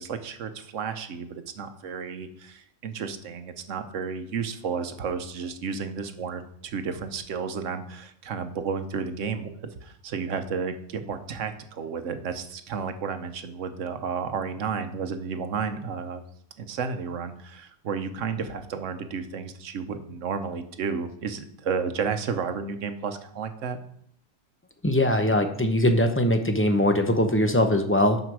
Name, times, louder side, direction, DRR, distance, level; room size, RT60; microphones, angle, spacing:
voice 1, 0.0-16.2 16.6-23.8, right 6 dB, 70° right, 9 dB, 1.2 m, -32 dB
voice 2, 24.8-28.2, left 1 dB, 15° left, 6 dB, 0.6 m, -21 dB
12.0 x 5.1 x 4.7 m, 0.68 s
omnidirectional pair, 1.3 m